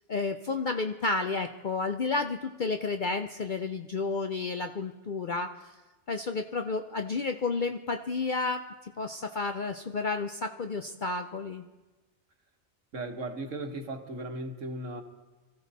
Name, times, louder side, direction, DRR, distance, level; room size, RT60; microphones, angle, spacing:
voice 1, 0.1-5.5 6.1-8.6 9.0-11.6, left 3 dB, 50° left, 6 dB, 0.6 m, -31 dB
voice 2, 12.9-15.0, right 2 dB, 65° right, 5 dB, 1.7 m, -36 dB
24.5 x 14.5 x 4.1 m, 1.2 s
omnidirectional pair, 1.4 m